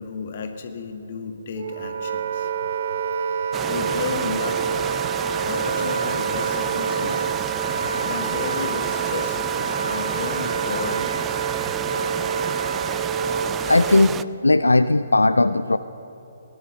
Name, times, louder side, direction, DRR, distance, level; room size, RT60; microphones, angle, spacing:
voice 1, 0.0-2.5 3.6-4.8 5.4-7.5 8.0-9.5 9.8-11.4, left 5 dB, 50° left, 6 dB, 1.8 m, -33 dB
Wind instrument woodwind instrument, 1.6-14.2, right 6 dB, 55° right, 0.8 m, -27 dB
sound 1, 3.5-14.2, right 9 dB, 15° right, 0.4 m, -31 dB
voice 2, 13.7-15.8, left 2 dB, 85° left, 13 dB, 0.4 m, -18 dB
18.0 x 11.0 x 6.9 m, 3.0 s
figure-of-eight pair, 135°, 0 cm